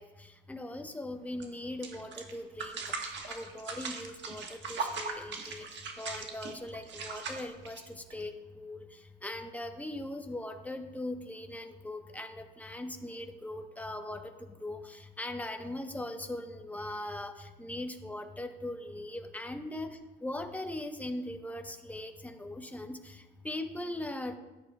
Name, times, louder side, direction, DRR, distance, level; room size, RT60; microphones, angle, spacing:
voice 1, 0.0-24.4, left 1 dB, 10° left, 5 dB, 1.0 m, -40 dB
sound 1, 1.4-1.5 1.8-8.2, right 4 dB, 65° right, 1.4 m, -39 dB
13.5 x 10.0 x 2.3 m, 1.1 s
cardioid pair, 90°, 20 cm